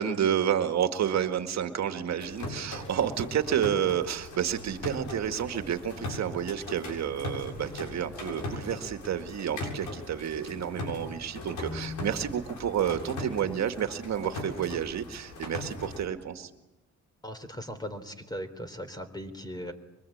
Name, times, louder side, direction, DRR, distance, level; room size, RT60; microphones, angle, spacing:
voice 1, 0.0-16.5, right 9 dB, 60° right, 7 dB, 2.0 m, -30 dB
sound 1, 2.2-16.1, left 2 dB, 80° left, 7.1 m, -39 dB
voice 2, 17.2-19.7, equal, 15° left, 8 dB, 3.6 m, -38 dB
24.5 x 23.5 x 8.7 m, 0.99 s
cardioid pair, 90°, 30 cm